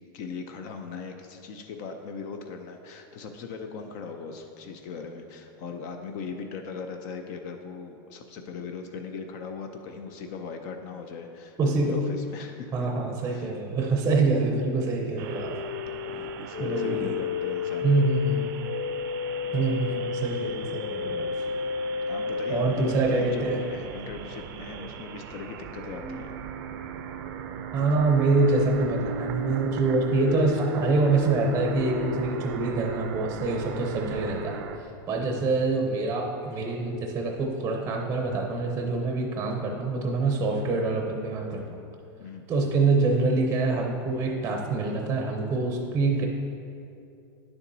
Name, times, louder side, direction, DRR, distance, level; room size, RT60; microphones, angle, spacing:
voice 1, 0.1-12.9 13.3-13.5 14.1-14.2 16.0-18.1 19.4-19.6 22.1-26.3 42.2-42.5, left 5 dB, 45° left, 5 dB, 0.6 m, -39 dB
voice 2, 11.6-12.0 12.7-15.6 16.6-17.2 17.8-18.6 19.5-21.3 22.5-23.6 27.7-34.6 35.1-41.8 42.5-46.3, right 3 dB, 20° right, 2 dB, 0.6 m, -25 dB
sound 1, 15.2-22.7 26.0-32.9, left 4 dB, 15° left, 1.2 m, -33 dB
sound 2, 15.2-34.8, right 7 dB, 60° right, 0.5 m, -40 dB
10.0 x 7.0 x 2.7 m, 2.6 s
supercardioid pair, 145°, 13 cm